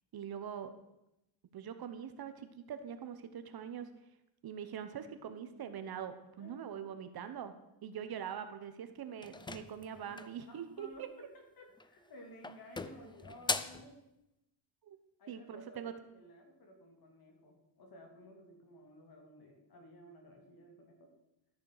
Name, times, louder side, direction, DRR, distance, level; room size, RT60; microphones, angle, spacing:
voice 1, 0.1-0.7 1.5-3.9 4.4-7.5 7.8-11.1 14.8-15.0 15.3-15.9, right 8 dB, 50° right, 9 dB, 1.2 m, -43 dB
voice 2, 6.4-7.0 10.1-14.0 15.2-21.1, left 1 dB, 50° left, 2 dB, 3.1 m, -55 dB
sound 1, 9.2-10.4 11.7-12.1 12.4-13.9, left 3 dB, 10° left, 0.4 m, -39 dB
13.0 x 7.0 x 6.7 m, 0.89 s
cardioid pair, 135°, 46 cm